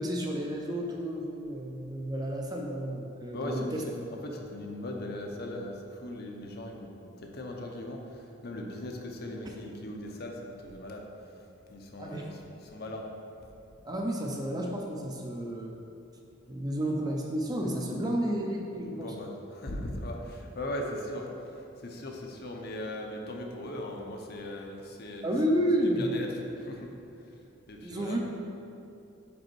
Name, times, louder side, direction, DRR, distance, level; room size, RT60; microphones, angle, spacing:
voice 1, 0.0-3.8 4.2-4.4 12.0-12.3 13.9-15.7 16.5-19.1 25.2-26.1 27.8-28.2, equal, 20° right, 0 dB, 0.5 m, -31 dB
voice 2, 3.3-5.7 6.0-6.9 7.2-8.0 8.4-11.1 11.7-13.0 18.9-21.3 21.8-25.3 25.8-26.3 26.6-26.9 27.7-28.2, left 1 dB, 55° left, 1 dB, 0.7 m, -38 dB
5.2 x 4.2 x 4.6 m, 2.7 s
head